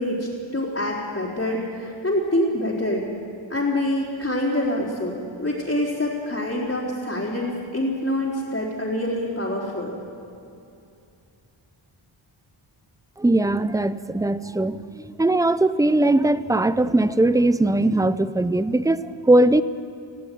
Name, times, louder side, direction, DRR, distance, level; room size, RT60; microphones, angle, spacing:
voice 1, 0.0-3.0 3.5-10.0, left 1 dB, 25° left, -7 dB, 3.8 m, -26 dB
voice 2, 13.2-19.6, right 2 dB, 5° right, 14 dB, 0.5 m, -20 dB
19.0 x 16.0 x 9.4 m, 2.6 s
wide cardioid pair, 120°, 48 cm